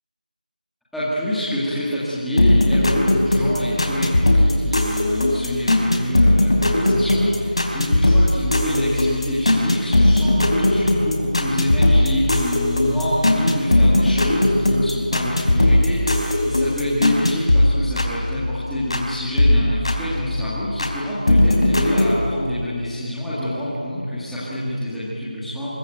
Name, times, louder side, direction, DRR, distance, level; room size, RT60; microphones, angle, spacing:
voice 1, 0.9-25.7, left 1 dB, ahead, -13 dB, 1.9 m, -26 dB
sound 1, 2.4-19.1 19.4-20.9 21.3-22.1, left 1 dB, 40° left, 3.4 m, -19 dB
26.5 x 23.0 x 9.2 m, 2.4 s
figure-of-eight pair, 180°, 5 cm